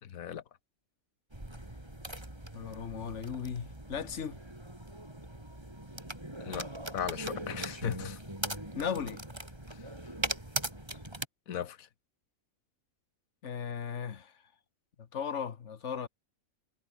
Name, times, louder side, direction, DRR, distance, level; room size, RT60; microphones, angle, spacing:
voice 1, 0.0-0.4 6.4-8.2 9.7-9.9 11.5-11.9, left 9 dB, 75° left, 1.6 m, -37 dB
sound 1, 1.3-11.2, right 1 dB, 20° right, 4.0 m, -40 dB
voice 2, 2.5-4.4 8.7-9.2 13.4-14.3 15.0-16.1, left 7 dB, 55° left, 1.5 m, -36 dB
omnidirectional pair, 1.5 m